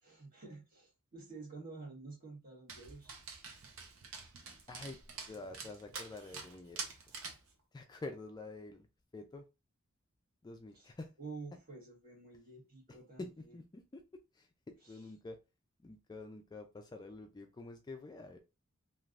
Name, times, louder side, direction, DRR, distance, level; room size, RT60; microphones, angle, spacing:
voice 1, 0.0-3.1 5.2-5.4 10.7-10.9 11.2-13.6 14.8-15.0, right 3 dB, 45° right, 1.4 m, -50 dB
Dog, 2.7-7.5, right 5 dB, 85° right, 0.7 m, -47 dB
voice 2, 4.7-5.0 5.3-6.8 7.7-8.9 9.1-9.5 10.4-11.1 13.2-15.4 15.8-18.4, left 2 dB, 20° left, 0.3 m, -48 dB
3.2 x 2.4 x 2.4 m
head